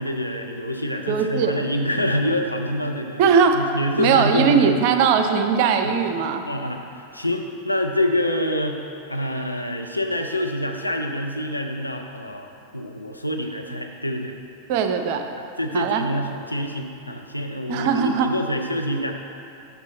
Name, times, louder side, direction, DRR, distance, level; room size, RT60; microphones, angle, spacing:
voice 1, 0.0-3.2 3.5-4.8 5.8-6.0 6.4-8.8 9.1-14.3 15.4-19.1, left 1 dB, 85° left, 3 dB, 0.5 m, -26 dB
voice 2, 1.1-1.6 3.2-3.6 4.0-6.4 14.7-15.3 15.7-16.0 17.7-18.3, right 6 dB, 45° right, 6 dB, 0.5 m, -19 dB
7.0 x 5.6 x 3.8 m, 2.6 s
figure-of-eight pair, 90°, 0 cm